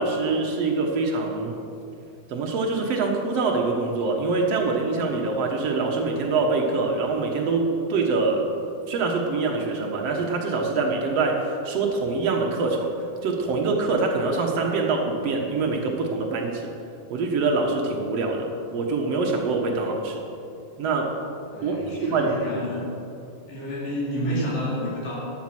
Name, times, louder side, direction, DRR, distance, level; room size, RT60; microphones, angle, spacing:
voice 1, 0.0-1.5 2.3-8.4 8.9-12.9 13.2-16.7 17.1-20.2 20.8-21.1 21.6-22.3, right 3 dB, 70° right, 0 dB, 1.4 m, -24 dB
voice 2, 21.5-22.9 23.5-25.2, equal, 85° left, -6 dB, 5.7 m, -29 dB
14.0 x 11.0 x 6.0 m, 2.6 s
omnidirectional pair, 4.8 m